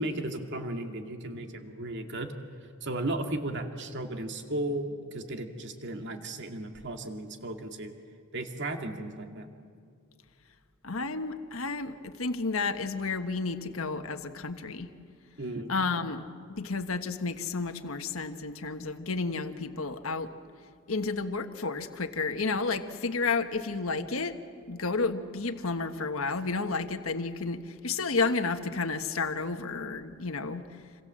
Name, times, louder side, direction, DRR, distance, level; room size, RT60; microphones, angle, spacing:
voice 1, 0.0-2.3 2.8-7.9 8.3-9.5 15.4-15.7, right 1 dB, 60° right, 4 dB, 2.2 m, -35 dB
voice 2, 10.8-14.9 15.7-16.2 16.5-20.3 20.9-24.4 24.7-30.6, left 4 dB, 75° left, 7 dB, 1.4 m, -31 dB
28.0 x 27.0 x 7.6 m, 2.4 s
head